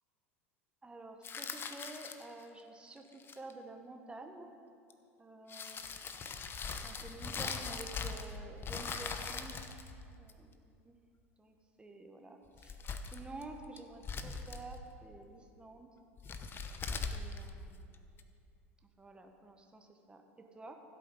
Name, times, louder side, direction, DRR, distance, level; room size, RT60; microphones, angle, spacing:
voice 1, 0.8-4.5 5.2-5.8 6.8-9.6 10.2-10.9 11.4-12.8 13.0-15.9 17.1-18.1 19.0-20.8, right 2 dB, 15° right, 4 dB, 1.3 m, -50 dB
sound 1, 1.2-2.4 3.1-3.5 4.9-5.0 5.5-8.4 8.6-10.5 12.5-13.4 13.8-14.8 16.2-18.2, left 5 dB, 30° left, 0.9 m, -41 dB
15.5 x 8.3 x 5.4 m, 2.5 s
hypercardioid pair, 80°, 7 cm